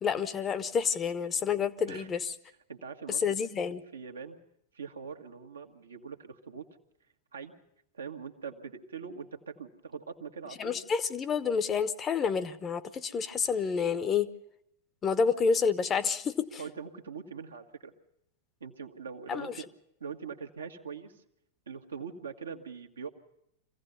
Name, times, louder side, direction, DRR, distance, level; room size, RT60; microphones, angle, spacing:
voice 1, 0.0-2.3 3.2-3.8 10.6-14.3 15.0-16.6 19.3-19.5, left 6 dB, 25° left, 13 dB, 0.9 m, -29 dB
voice 2, 2.7-3.4 3.9-4.4 4.7-6.7 7.3-7.5 7.9-10.8 16.6-17.9 18.6-19.6 20.0-21.2 21.7-23.1, right 6 dB, 70° right, 4 dB, 1.5 m, -42 dB
24.5 x 16.0 x 6.8 m, 0.78 s
figure-of-eight pair, 90°, 0 cm